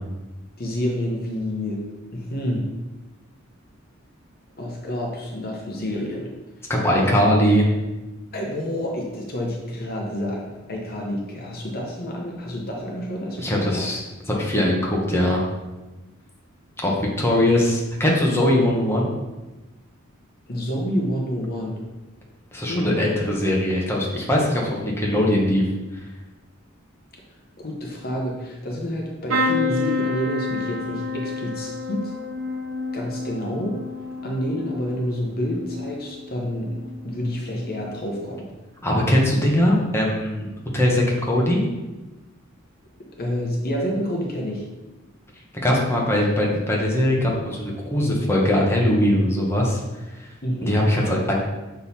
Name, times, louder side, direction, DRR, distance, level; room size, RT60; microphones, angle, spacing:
voice 1, 0.6-1.8 2.1-2.7 4.6-6.3 6.9-7.2 8.3-13.9 20.5-21.8 22.7-23.0 27.6-32.1 32.9-33.8 34.2-36.7 37.0-38.5 43.2-44.7 50.4-50.8, equal, 50° left, -1 dB, 1.0 m, -28 dB
voice 2, 6.7-7.7 13.4-14.0 14.3-15.5 16.8-19.1 22.5-25.6 25.9-26.0 38.8-41.6 45.5-49.8 50.6-51.4, left 1 dB, 10° left, -3 dB, 1.2 m, -21 dB
sound 1, 29.3-37.1 37.6-38.1 39.4-39.6 39.8-39.9, left 3 dB, 70° right, 0.8 m, -29 dB
6.7 x 3.9 x 4.2 m, 1.1 s
head